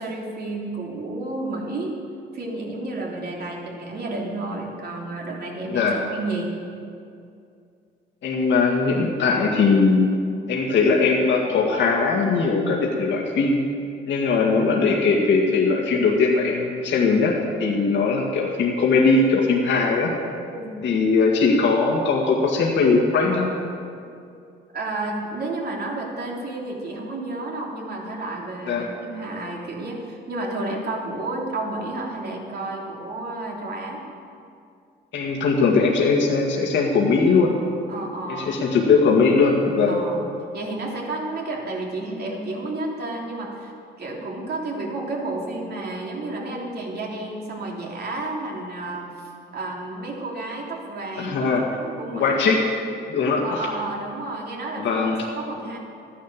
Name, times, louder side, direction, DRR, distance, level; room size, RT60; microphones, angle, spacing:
voice 1, 0.0-2.0 2.3-6.5 20.4-20.9 24.7-34.0 37.9-38.5 39.9-40.3 40.5-43.7 44.0-52.5 53.4-55.0 55.3-55.8, right 2 dB, 55° right, -1 dB, 3.1 m, -31 dB
voice 2, 5.7-6.0 8.2-10.1 10.5-13.6 14.1-20.1 20.8-23.5 28.7-28.9 35.1-37.5 38.3-40.0 51.2-51.6 52.1-52.7 53.1-53.7 54.8-55.2, left 4 dB, 70° left, -2 dB, 2.0 m, -20 dB
14.0 x 10.5 x 7.4 m, 2.4 s
cardioid pair, 90°, 20 cm